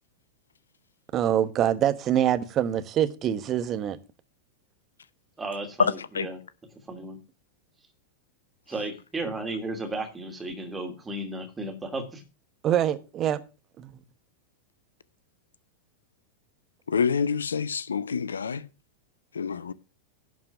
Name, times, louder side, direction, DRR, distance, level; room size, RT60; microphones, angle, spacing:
voice 1, 1.1-4.0 12.6-13.4 13.8-14.0, right 10 dB, 30° right, 1.1 m, -25 dB
voice 2, 5.4-6.4 6.9-7.2 8.7-12.2, right 2 dB, 15° right, 2.5 m, -34 dB
voice 3, 16.9-18.7 19.3-19.7, left 6 dB, 70° left, 0.6 m, -27 dB
11.0 x 4.7 x 7.1 m
figure-of-eight pair, 90°, 0 cm